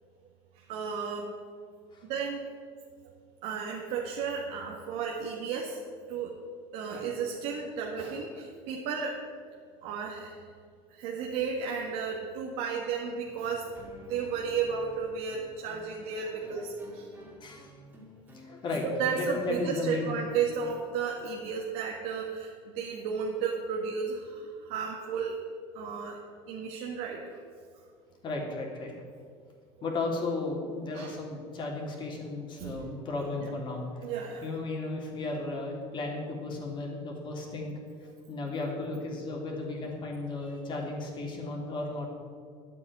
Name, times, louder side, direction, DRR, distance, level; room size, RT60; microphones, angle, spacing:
voice 1, 0.5-1.3 2.0-2.5 3.4-5.8 6.1-6.3 6.7-9.2 9.8-10.4 10.9-13.7 14.0-17.1 18.8-25.3 25.7-26.2 26.5-27.2 30.9-31.2 32.6-32.8 34.0-34.4, right 6 dB, 80° right, -1 dB, 1.7 m, -33 dB
sound 1, 13.2-20.6, equal, 15° right, 2.6 m, -52 dB
voice 2, 17.4-17.7 18.3-20.2 28.2-28.9 29.8-34.1 34.4-37.7 38.3-42.1, left 2 dB, 40° left, -1 dB, 3.3 m, -34 dB
10.5 x 8.5 x 9.6 m, 2.1 s
cardioid pair, 135°, 12 cm